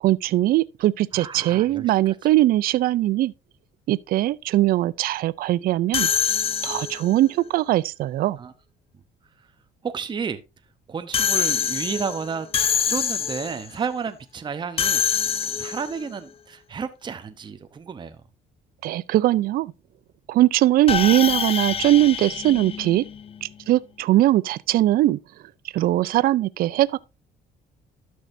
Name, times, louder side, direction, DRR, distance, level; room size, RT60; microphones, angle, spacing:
voice 1, 0.0-3.3 3.9-6.1 6.6-8.4 18.8-19.7 20.3-23.0 23.4-25.2 25.7-27.0, right 15 dB, 60° right, 0.4 m, -20 dB
voice 2, 1.1-1.9 6.7-6.8 8.4-8.5 9.8-10.4 10.9-12.5 12.9-15.0 15.6-18.2, right 6 dB, 25° right, 0.8 m, -31 dB
sound 1, 5.9-7.2 11.1-13.7 14.8-16.0 20.9-23.4, left 8 dB, 35° left, 0.5 m, -25 dB
12.0 x 6.3 x 2.6 m
cardioid pair, 110°, 17 cm